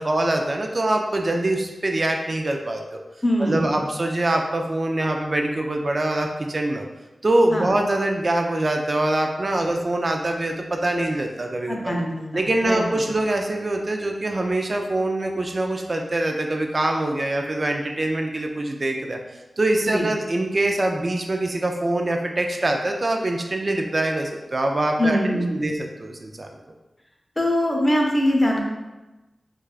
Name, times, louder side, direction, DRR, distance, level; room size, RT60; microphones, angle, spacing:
voice 1, 0.0-3.0 3.4-6.9 7.2-11.9 12.3-19.2 19.6-26.5, right 1 dB, 50° right, 3 dB, 0.3 m, -24 dB
voice 2, 3.2-3.8 7.5-7.7 11.7-13.0 19.9-20.1 25.0-25.7 27.4-28.6, equal, 15° left, 0 dB, 0.8 m, -23 dB
4.6 x 2.3 x 2.3 m, 1.1 s
cardioid pair, 40°, 0 cm